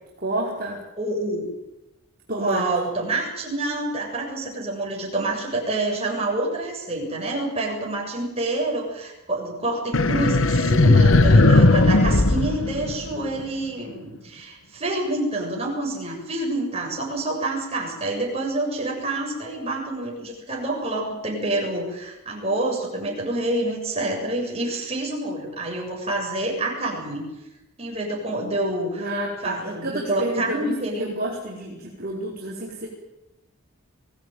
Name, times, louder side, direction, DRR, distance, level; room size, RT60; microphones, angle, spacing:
voice 1, 0.2-0.8 2.3-2.6 29.0-32.9, right 1 dB, 45° right, -5 dB, 4.9 m, -30 dB
voice 2, 1.0-1.5 2.4-27.3 27.8-29.1 29.4-31.1, right 2 dB, 30° right, -1 dB, 7.5 m, -27 dB
sound 1, 9.9-13.4, left 2 dB, 65° left, 1.2 m, -17 dB
23.5 x 18.0 x 9.6 m, 0.96 s
head